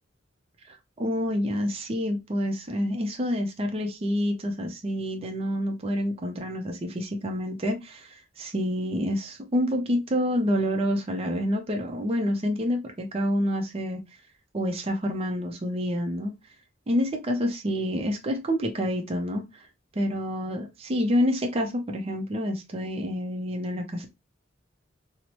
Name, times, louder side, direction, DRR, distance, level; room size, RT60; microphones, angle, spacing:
voice 1, 0.7-14.0 14.5-16.3 16.9-19.7 20.0-24.1, equal, 30° right, 0.5 m, -28 dB
3.0 x 2.0 x 2.8 m
head